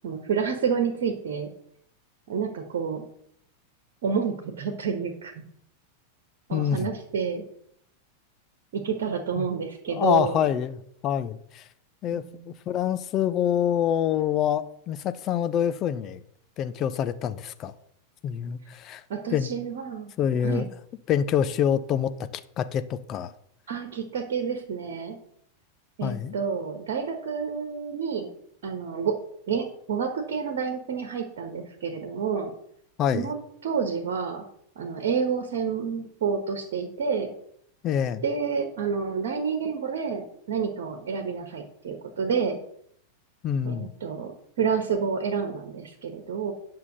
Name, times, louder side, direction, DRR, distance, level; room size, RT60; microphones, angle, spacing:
voice 1, 0.0-1.5 2.3-3.0 4.0-5.4 6.5-7.4 8.7-10.4 12.1-12.4 19.1-20.1 20.4-20.7 23.7-25.2 26.0-28.3 28.6-29.2 29.5-32.5 33.1-34.4 34.8-37.3 38.2-42.6 43.6-46.5, right 6 dB, 55° right, 1.4 m, -29 dB
voice 2, 6.5-6.9 9.4-9.5 9.9-11.6 12.0-16.2 16.6-17.7 18.2-19.0 19.3-19.5 20.2-20.7 21.1-22.1 22.6-23.3 26.0-26.3 33.0-33.3 37.8-38.2 43.4-43.9, left 9 dB, 35° left, 0.7 m, -26 dB
9.7 x 5.8 x 6.7 m
figure-of-eight pair, 90°, 0 cm